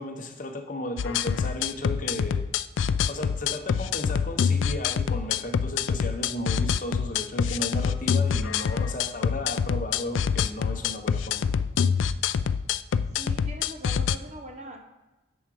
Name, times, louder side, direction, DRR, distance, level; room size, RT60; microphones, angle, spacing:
voice 1, 0.0-2.4 3.1-11.6, left 1 dB, 40° left, 5 dB, 0.8 m, -35 dB
sound 1, 1.0-14.2, left 7 dB, 75° left, 0.3 m, -26 dB
voice 2, 13.1-14.8, right 1 dB, 35° right, 3 dB, 1.1 m, -41 dB
7.2 x 7.0 x 4.9 m, 1.0 s
head